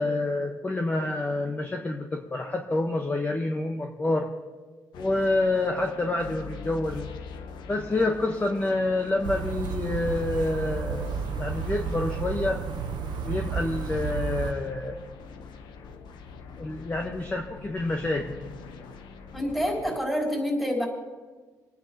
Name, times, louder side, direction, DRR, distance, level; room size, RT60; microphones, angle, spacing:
voice 1, 0.0-4.3 4.9-7.1 7.7-12.6 13.3-15.0 16.6-18.3, left 2 dB, 20° left, 2 dB, 1.1 m, -28 dB
sound 1, 4.9-20.0, left 5 dB, 80° left, 0.9 m, -43 dB
sound 2, 9.2-14.5, right 6 dB, 75° right, 0.7 m, -32 dB
voice 2, 19.3-20.9, equal, 5° left, -2 dB, 3.8 m, -27 dB
28.5 x 9.6 x 2.9 m, 1.4 s
cardioid pair, 100°, 8 cm